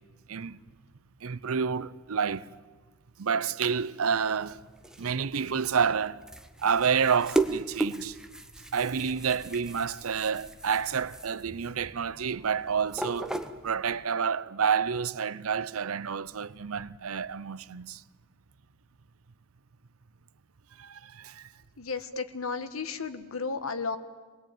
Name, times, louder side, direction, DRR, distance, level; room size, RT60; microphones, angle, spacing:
voice 1, 0.3-0.6 1.2-2.5 3.2-4.6 5.0-6.2 6.6-8.2 8.7-18.0 20.8-21.5, right 6 dB, 80° right, 0.7 m, -29 dB
sound 1, 4.5-14.0, right 2 dB, 5° right, 0.8 m, -36 dB
voice 2, 21.8-24.0, left 4 dB, 75° left, 1.4 m, -33 dB
24.5 x 20.0 x 9.1 m
head